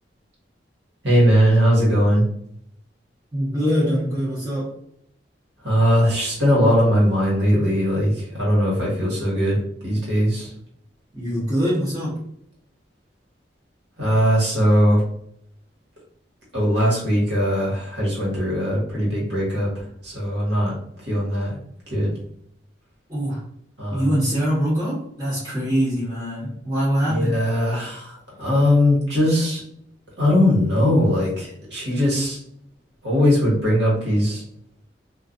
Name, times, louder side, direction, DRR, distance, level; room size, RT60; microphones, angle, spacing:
voice 1, 1.0-2.2 5.6-10.5 14.0-15.0 16.5-20.8 21.0-21.6 21.9-22.1 23.8-24.1 27.1-29.6 30.2-32.4 33.0-34.4, equal, 75° right, -5 dB, 1.3 m, -20 dB
voice 2, 3.3-4.7 11.1-12.2 23.1-23.4 23.9-27.4, equal, 25° right, -13 dB, 1.0 m, -23 dB
2.4 x 2.4 x 2.5 m, 0.68 s
head